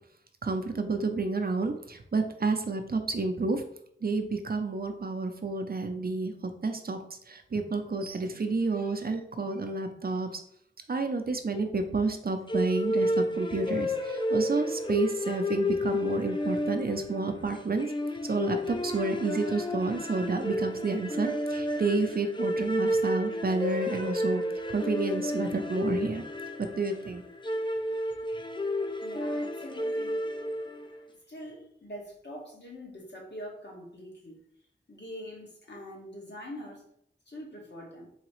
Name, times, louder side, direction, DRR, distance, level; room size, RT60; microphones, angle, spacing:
voice 1, 0.4-3.6 4.0-10.3 10.9-17.9 18.2-24.4 24.7-26.2 26.6-27.2, right 3 dB, 50° right, 6 dB, 0.5 m, -30 dB
sound 1, 12.5-31.0, left 1 dB, 25° left, 0.4 m, -31 dB
voice 2, 28.8-30.2 30.7-34.4 34.9-36.8 37.3-38.1, equal, 60° left, -3 dB, 1.3 m, -44 dB
3.9 x 2.8 x 3.1 m, 0.67 s
wide cardioid pair, 60°, 20 cm